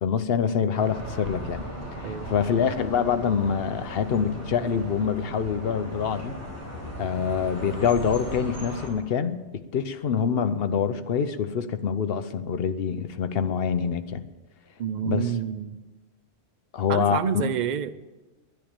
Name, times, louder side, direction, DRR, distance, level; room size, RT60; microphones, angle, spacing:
voice 1, 0.0-1.6 2.0-6.3 7.0-9.4 9.7-14.2 15.0-15.3 16.7-17.4, left 7 dB, 60° left, 11 dB, 0.9 m, -25 dB
sound 1, 0.7-8.9, equal, 10° left, 4.7 m, -37 dB
voice 2, 14.8-15.8 16.9-17.9, right 8 dB, 55° right, 11 dB, 0.5 m, -28 dB
10.5 x 10.0 x 8.8 m, 1.2 s
omnidirectional pair, 1.2 m